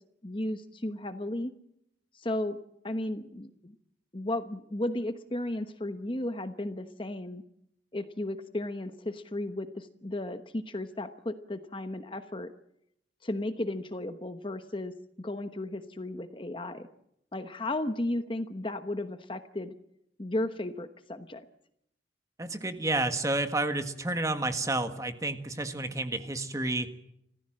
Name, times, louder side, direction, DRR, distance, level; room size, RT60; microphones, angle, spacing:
voice 1, 0.2-1.5 2.2-2.6 2.8-3.7 4.1-7.4 7.9-12.5 13.2-14.9 15.2-16.9 17.3-19.7 20.2-21.4, left 1 dB, 30° left, 9 dB, 1.1 m, -34 dB
voice 2, 22.4-26.9, right 2 dB, 20° right, 8 dB, 1.6 m, -30 dB
29.0 x 15.0 x 7.6 m, 0.77 s
head